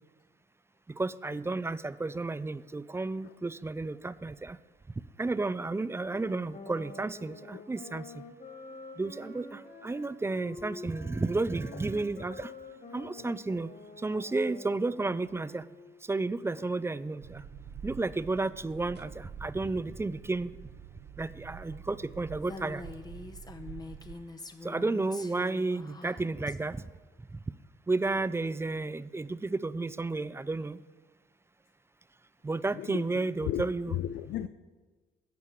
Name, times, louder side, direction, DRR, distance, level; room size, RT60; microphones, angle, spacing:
voice 1, 0.9-4.6 5.2-8.2 9.0-12.5 12.9-13.7 14.0-15.7 16.1-17.4 17.8-20.5 21.2-22.8 24.6-26.8 27.9-30.8 32.4-34.0, right 3 dB, 15° right, 17 dB, 0.3 m, -32 dB
sound 1, 5.9-16.0, left 3 dB, 45° left, 2.5 m, -48 dB
sound 2, 17.2-24.2, right 7 dB, 60° right, 0.7 m, -47 dB
Female speech woman speaking, 22.4-26.6, left 2 dB, 20° left, 0.8 m, -44 dB
voice 2, 32.7-34.5, left 12 dB, 70° left, 11 dB, 0.5 m, -36 dB
13.0 x 4.7 x 8.2 m, 1.3 s
cardioid pair, 90°, 20 cm